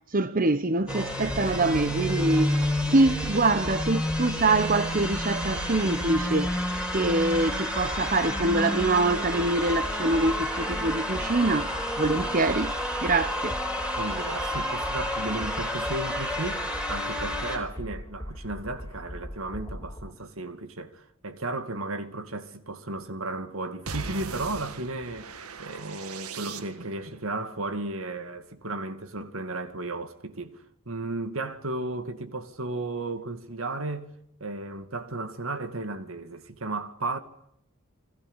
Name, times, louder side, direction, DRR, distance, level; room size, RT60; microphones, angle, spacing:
voice 1, 0.1-6.6 6.9-12.7 13.0-13.6, right 2 dB, 40° right, 1.0 m, -25 dB
sound 1, 0.9-17.6, equal, 5° right, 5.0 m, -30 dB
sound 2, 1.3-20.1, equal, 15° left, 3.9 m, -40 dB
voice 2, 14.0-16.6 16.9-25.3 25.6-34.1 34.4-37.2, right 2 dB, 70° right, 2.4 m, -34 dB
sound 3, 23.9-27.1, right 4 dB, 90° right, 1.8 m, -39 dB
29.5 x 23.0 x 8.2 m
head